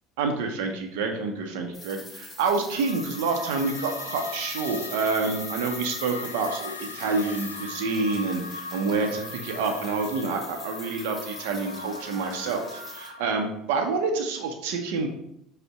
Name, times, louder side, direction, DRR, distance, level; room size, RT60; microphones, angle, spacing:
voice 1, 0.2-15.1, right 4 dB, 70° right, 3 dB, 0.6 m, -28 dB
sound 1, 1.7-13.1, left 2 dB, 20° left, 1.7 m, -42 dB
sound 2, 2.7-13.5, left 4 dB, 90° left, 0.3 m, -40 dB
5.1 x 2.1 x 4.7 m, 0.76 s
hypercardioid pair, 70°, 0 cm